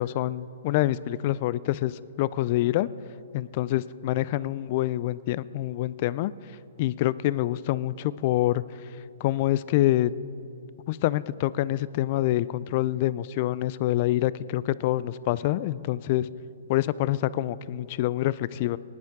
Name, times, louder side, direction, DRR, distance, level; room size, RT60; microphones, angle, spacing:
voice 1, 0.0-2.9 3.3-6.3 6.8-8.6 9.2-10.1 10.9-16.3 16.7-18.8, left 15 dB, 45° left, 19 dB, 0.3 m, -26 dB
19.5 x 10.5 x 3.6 m, 2.6 s
hypercardioid pair, 125°, 0 cm